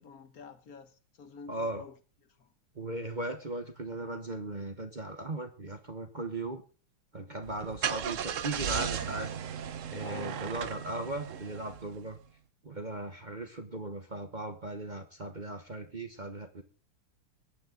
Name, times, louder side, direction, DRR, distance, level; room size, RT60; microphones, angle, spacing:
voice 1, 0.0-2.0 2.4-2.5 10.0-10.5, left 6 dB, 50° left, 1.4 m, -48 dB
voice 2, 1.5-1.8 2.7-6.6 7.1-9.3 9.9-12.2 12.6-16.6, right 2 dB, 30° right, 0.8 m, -38 dB
Car / Engine starting, 7.4-12.1, right 8 dB, 75° right, 0.7 m, -36 dB
22.5 x 9.3 x 3.9 m
omnidirectional pair, 2.4 m